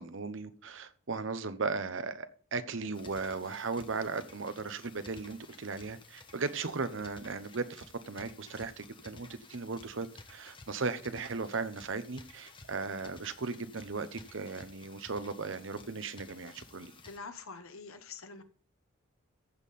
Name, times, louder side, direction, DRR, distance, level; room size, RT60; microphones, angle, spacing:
voice 1, 0.0-16.9, right 4 dB, 60° right, 0.8 m, -37 dB
sound 1, 2.9-17.2, left 3 dB, 25° left, 1.0 m, -54 dB
voice 2, 17.0-18.4, left 4 dB, 80° left, 1.3 m, -45 dB
15.0 x 5.5 x 4.2 m
head